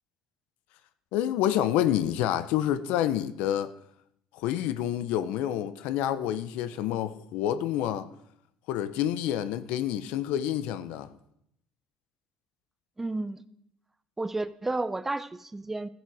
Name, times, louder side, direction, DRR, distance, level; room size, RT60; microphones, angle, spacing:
voice 1, 1.1-3.7 4.3-8.1 8.7-11.1, left 11 dB, 85° left, 0.7 m, -28 dB
voice 2, 13.0-13.4 14.2-15.9, right 2 dB, 15° right, 0.6 m, -31 dB
14.0 x 7.5 x 4.8 m
cardioid pair, 110°, 2 cm